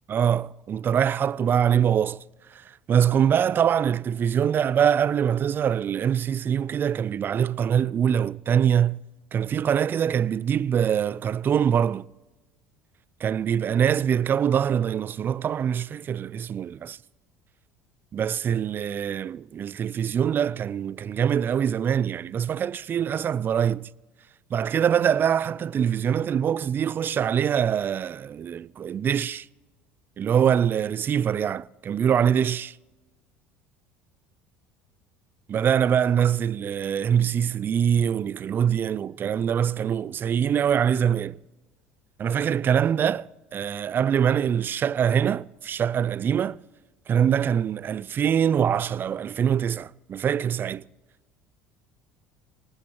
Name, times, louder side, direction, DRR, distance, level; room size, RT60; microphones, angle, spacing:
voice 1, 0.1-2.2 2.5-2.6 2.9-9.0 9.3-12.1 13.2-17.0 18.1-23.9 24.5-29.5 30.2-32.7 35.5-41.4 42.2-46.6 47.1-50.8, right 8 dB, 40° right, 0.4 m, -24 dB
25.0 x 19.5 x 3.0 m
hypercardioid pair, 80°, 6 cm